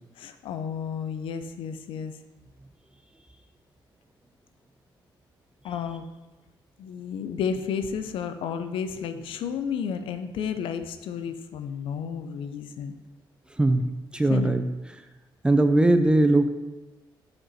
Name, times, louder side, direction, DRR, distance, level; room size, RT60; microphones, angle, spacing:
voice 1, 0.2-2.2 5.6-6.1 6.8-12.9 14.3-14.5, left 7 dB, 85° left, 9 dB, 0.5 m, -32 dB
voice 2, 13.6-13.9 14.1-14.7 15.4-16.5, right 2 dB, 10° right, 8 dB, 0.4 m, -20 dB
6.0 x 5.1 x 4.1 m, 1.1 s
cardioid pair, 135°, 9 cm